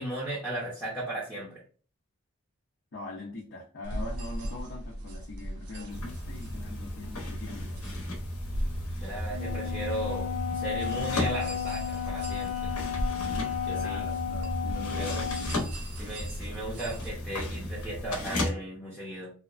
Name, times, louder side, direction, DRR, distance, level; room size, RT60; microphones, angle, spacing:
voice 1, 0.0-1.6 9.0-12.7 13.6-14.1 14.9-15.2 16.0-19.3, right 1 dB, 5° left, -8 dB, 0.6 m, -36 dB
voice 2, 2.9-7.9 13.7-15.3, left 2 dB, 50° left, -3 dB, 0.5 m, -42 dB
sound 1, 3.8-17.1, equal, 80° right, 0.5 m, -39 dB
sound 2, 5.9-18.5, left 1 dB, 85° left, 0.8 m, -35 dB
Wind instrument woodwind instrument, 9.3-15.6, left 9 dB, 30° right, 0.7 m, -34 dB
2.8 x 2.2 x 2.4 m, 0.39 s
head